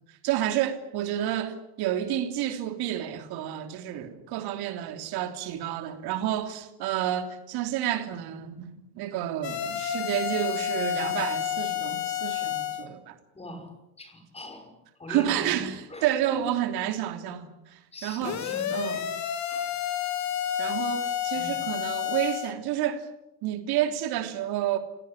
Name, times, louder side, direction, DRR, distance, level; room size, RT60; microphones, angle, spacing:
voice 1, 0.2-13.1 15.1-18.4 18.7-19.0 20.6-23.1 23.4-24.8, right 11 dB, 60° right, 3.3 m, -30 dB
sound 1, 9.4-12.9 18.2-22.5, left 10 dB, 40° left, 2.9 m, -30 dB
voice 2, 13.3-13.7 14.0-14.7 15.0-16.5 17.9-19.1 19.5-19.7 21.3-21.6, left 1 dB, 15° left, 5.7 m, -41 dB
29.0 x 18.0 x 9.9 m
cardioid pair, 135°, 42 cm